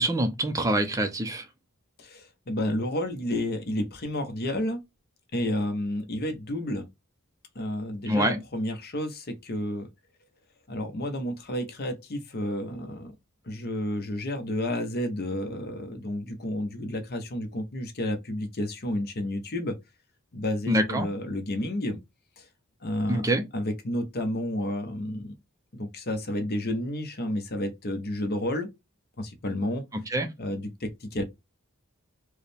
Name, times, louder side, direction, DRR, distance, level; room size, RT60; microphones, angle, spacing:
voice 1, 0.0-1.5 8.1-8.4 20.7-21.1 23.1-23.4 29.9-30.3, right 1 dB, 15° right, 0.5 m, -25 dB
voice 2, 2.0-4.8 5.3-6.9 7.5-9.9 10.7-13.1 13.5-19.8 20.3-22.0 22.4-22.5 22.8-25.3 25.7-28.7 29.2-29.8 30.4-31.2, left 1 dB, 45° left, 0.8 m, -31 dB
4.7 x 2.1 x 3.3 m
head